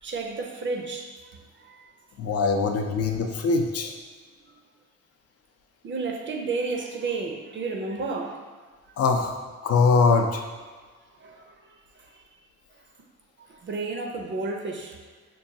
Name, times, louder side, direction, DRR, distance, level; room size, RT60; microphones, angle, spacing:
voice 1, 0.0-1.1 1.6-1.8 2.4-2.5 5.8-8.4 11.2-11.4 13.4-15.0, right 3 dB, 40° right, 2 dB, 0.5 m, -31 dB
voice 2, 2.2-3.9 9.0-9.3 9.6-10.4, left 4 dB, 55° left, 4 dB, 0.5 m, -22 dB
5.3 x 2.2 x 2.7 m, 1.5 s
cardioid pair, 90°, 30 cm